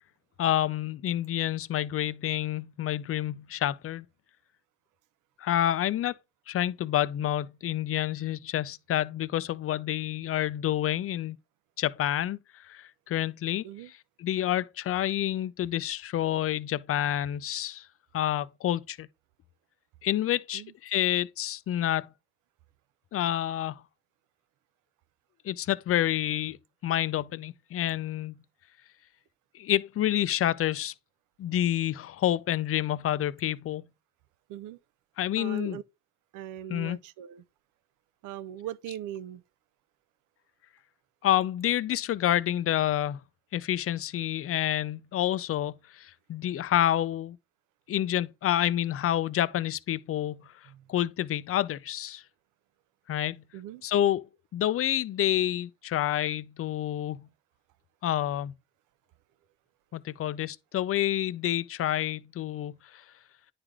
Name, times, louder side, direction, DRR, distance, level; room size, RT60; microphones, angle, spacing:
voice 1, 0.4-4.0 5.4-6.2 6.5-11.4 11.8-13.7 14.2-17.9 18.1-19.1 20.0-22.1 23.1-23.8 25.4-26.6 26.8-28.4 29.5-30.9 31.4-33.9 35.2-35.8 36.7-37.0 41.2-43.2 43.5-47.4 47.9-50.5 50.9-52.2 53.1-53.4 53.8-54.3 54.5-57.3 58.0-58.5 59.9-63.0, left 12 dB, 50° left, 0.4 m, -28 dB
voice 2, 35.4-35.8 36.3-37.4 38.2-39.4 50.7-50.8 53.5-53.8, right 11 dB, 85° right, 0.5 m, -40 dB
9.7 x 3.3 x 3.6 m
cardioid pair, 90°, 30 cm